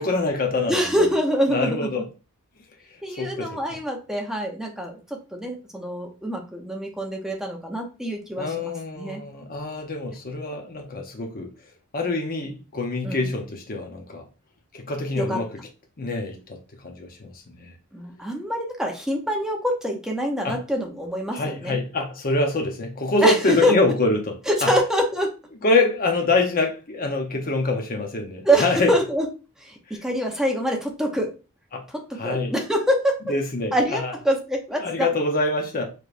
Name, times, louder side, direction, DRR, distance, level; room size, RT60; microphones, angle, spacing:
voice 1, 0.0-1.0 1.5-2.0 3.2-3.6 8.4-11.5 11.9-14.2 14.7-15.5 16.0-16.6 16.8-17.7 20.4-20.6 21.3-24.3 24.6-24.7 25.6-28.9 31.7-31.8 32.2-32.5 33.3-34.1 34.8-35.9, left 2 dB, 40° left, 0.8 m, -25 dB
voice 2, 0.7-1.9 3.0-9.2 12.4-12.6 13.0-13.3 15.1-15.4 17.9-21.8 23.2-23.8 24.5-25.3 28.4-29.3 29.6-31.3 31.9-33.2 33.7-35.1, equal, ahead, 0.7 m, -25 dB
4.9 x 3.1 x 2.5 m
head